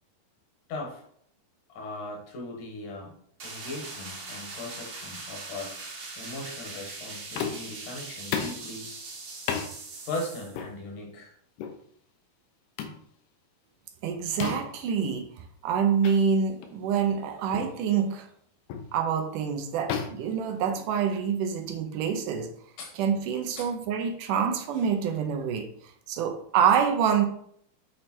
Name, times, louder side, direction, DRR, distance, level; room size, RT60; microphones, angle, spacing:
voice 1, 0.7-1.0 1.7-3.1 3.4-5.8 6.2-8.9 10.1-11.3 22.8-23.0 23.6-23.7, left 2 dB, 75° left, 1 dB, 2.8 m, -38 dB
sound 1, 3.4-10.6, right 3 dB, 55° right, 1.3 m, -41 dB
sound 2, 7.4-7.8 8.3-8.7 9.5-9.7 10.5-10.7 11.6-11.8 12.8-13.0 14.4-14.8 16.0-16.2 16.6-16.8 17.5-17.8 18.7-18.9 19.9-21.1, left 7 dB, 90° left, 2.4 m, -33 dB
voice 2, 14.0-15.3 15.6-18.3 18.9-22.5 23.0-25.7 26.1-27.3, right 7 dB, 80° right, 5 dB, 2.3 m, -26 dB
8.4 x 3.3 x 4.3 m, 0.65 s
omnidirectional pair, 3.7 m